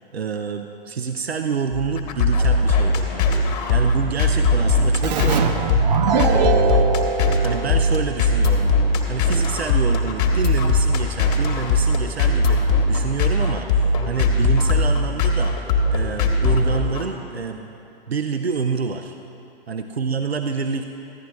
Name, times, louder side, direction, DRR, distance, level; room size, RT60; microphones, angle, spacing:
voice 1, 0.1-6.9 7.4-8.8 9.1-12.6 12.9-15.6 15.9-17.8 18.1-19.2 19.7-20.8, right 5 dB, 85° right, 6 dB, 0.5 m, -27 dB
sound 1, 1.7-17.1, left 2 dB, 40° left, 1.3 m, -20 dB
Keyboard (musical), 5.0-8.4, right 5 dB, 45° right, 0.7 m, -23 dB
15.0 x 11.0 x 3.1 m, 2.8 s
figure-of-eight pair, 110°, 31 cm